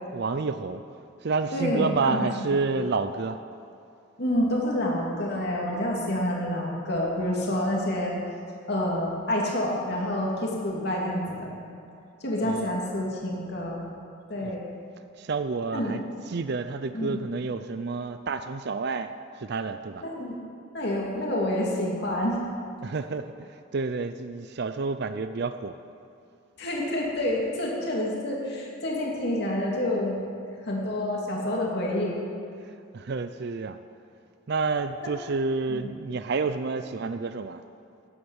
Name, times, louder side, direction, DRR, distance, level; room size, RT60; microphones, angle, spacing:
voice 1, 0.1-0.8 1.2-3.4 12.4-12.7 14.4-14.5 15.2-16.0 16.3-20.0 22.8-25.7 32.9-33.8 34.5-37.6, right 4 dB, 55° right, 10 dB, 0.5 m, -29 dB
voice 2, 1.5-2.8 4.2-8.1 8.7-11.5 12.2-13.9 14.3-14.6 15.7-15.9 16.9-17.2 20.0-20.4 20.7-22.4 26.6-30.2 30.6-32.2 35.0-35.1 35.7-35.9, left 1 dB, 55° left, -2 dB, 2.6 m, -28 dB
12.5 x 10.0 x 8.1 m, 2.6 s
head